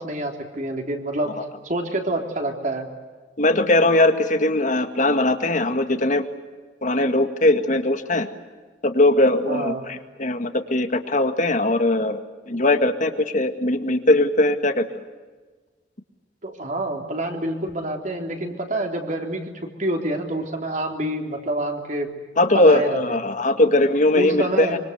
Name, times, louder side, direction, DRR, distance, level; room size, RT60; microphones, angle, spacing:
voice 1, 0.0-1.3 1.6-2.9 9.5-9.8 16.4-22.1 22.5-23.2 24.2-24.8, right 1 dB, 45° right, 3 dB, 3.6 m, -27 dB
voice 2, 3.4-6.2 6.8-8.3 8.8-12.2 12.5-14.8 22.4-24.7, left 2 dB, 45° left, 8 dB, 2.0 m, -20 dB
25.5 x 25.0 x 8.2 m, 1.4 s
head